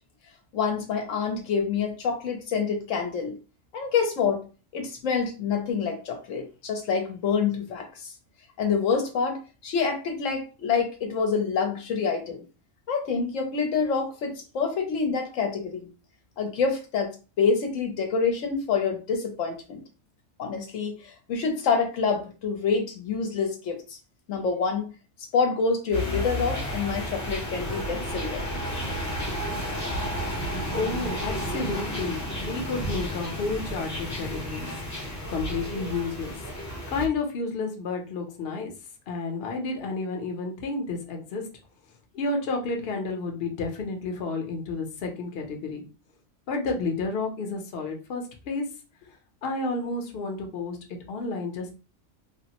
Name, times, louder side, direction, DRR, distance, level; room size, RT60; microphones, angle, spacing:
voice 1, 0.5-3.4 3.7-4.4 4.7-8.1 8.6-12.4 12.9-15.9 16.4-17.1 17.4-19.8 20.4-24.0 24.3-24.9 25.2-28.4, left 5 dB, 75° left, 3 dB, 1.0 m, -27 dB
sound 1, 25.9-37.1, equal, 20° left, 0.6 m, -32 dB
voice 2, 30.7-34.7 35.3-36.3 36.9-38.7 39.1-41.4 42.1-45.8 46.5-48.6 49.4-50.8 51.1-51.8, left 3 dB, 55° left, 2 dB, 0.8 m, -31 dB
3.3 x 2.0 x 2.8 m, 0.33 s
omnidirectional pair, 1.4 m